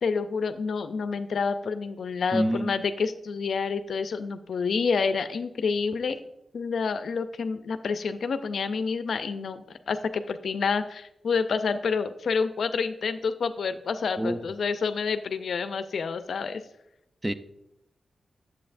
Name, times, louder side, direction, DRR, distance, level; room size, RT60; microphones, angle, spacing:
voice 1, 0.0-6.2 6.5-16.6, left 5 dB, 75° left, 0.4 m, -28 dB
voice 2, 2.3-2.9 14.2-14.4 17.2-17.3, right 1 dB, 15° right, 0.4 m, -27 dB
8.6 x 7.4 x 2.5 m
wide cardioid pair, 90°, 0 cm